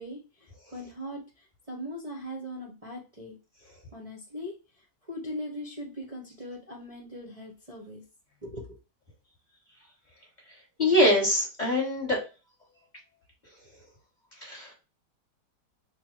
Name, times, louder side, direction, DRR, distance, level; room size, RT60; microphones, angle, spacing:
voice 1, 0.0-3.4 3.9-8.0 8.4-8.7, equal, 30° right, -2 dB, 0.7 m, -40 dB
voice 2, 10.8-12.2 14.4-14.7, left 1 dB, 25° left, -3 dB, 1.3 m, -23 dB
3.6 x 2.3 x 4.4 m, 0.32 s
omnidirectional pair, 1.8 m